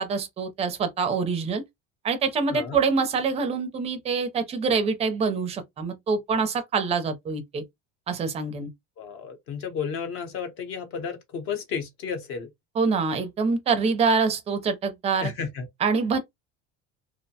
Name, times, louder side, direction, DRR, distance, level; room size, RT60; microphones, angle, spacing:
voice 1, 0.0-1.6 2.0-7.6 8.1-8.7 12.8-15.3 15.8-16.2, right 5 dB, 20° right, 0.5 m, -25 dB
voice 2, 9.0-12.5 15.2-15.7, left 6 dB, 45° left, 0.7 m, -32 dB
2.5 x 2.1 x 2.7 m
cardioid pair, 170°, 30 cm